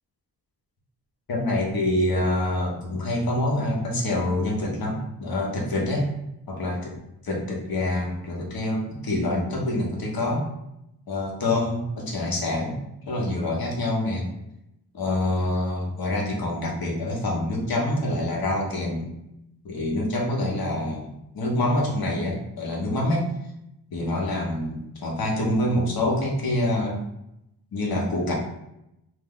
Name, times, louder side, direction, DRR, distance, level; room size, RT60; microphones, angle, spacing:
voice 1, 1.3-6.1 6.5-7.0 7.2-10.4 11.1-12.8 13.1-14.3 14.9-19.1 19.6-23.3 23.9-27.0 27.7-28.3, left 1 dB, 60° left, -1 dB, 0.9 m, -26 dB
2.6 x 2.1 x 3.7 m, 0.85 s
cardioid pair, 65°, 42 cm